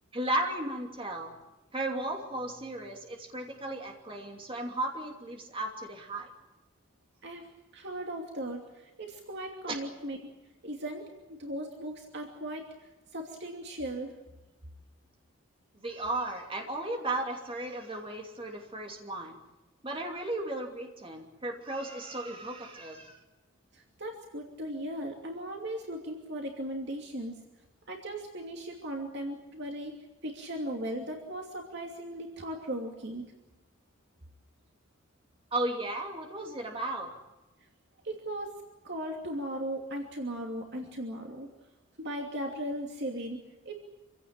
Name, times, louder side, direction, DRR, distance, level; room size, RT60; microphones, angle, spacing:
voice 1, 0.1-1.3 1.7-6.3 9.7-9.8 15.8-19.4 19.8-23.2 35.5-37.1, right 1 dB, 25° right, 2 dB, 2.8 m, -35 dB
voice 2, 7.7-10.2 10.6-14.1 23.7-27.4 27.9-30.0 30.2-33.3 38.0-38.5 38.8-41.5 42.0-43.7, right 1 dB, 60° right, 2 dB, 2.7 m, -37 dB
26.5 x 16.5 x 9.0 m, 1.1 s
head